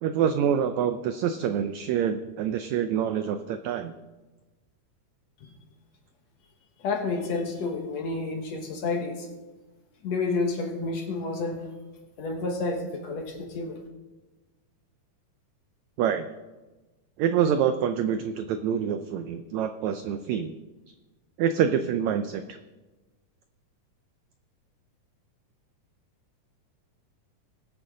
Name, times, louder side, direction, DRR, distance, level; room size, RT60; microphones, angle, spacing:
voice 1, 0.0-3.9 16.0-16.2 17.2-20.5 21.4-22.6, right 8 dB, 85° right, 8 dB, 1.6 m, -26 dB
voice 2, 6.8-9.3 10.0-11.6 12.2-13.8, left 3 dB, 60° left, 2 dB, 2.3 m, -30 dB
21.0 x 8.2 x 3.8 m, 1.2 s
omnidirectional pair, 3.9 m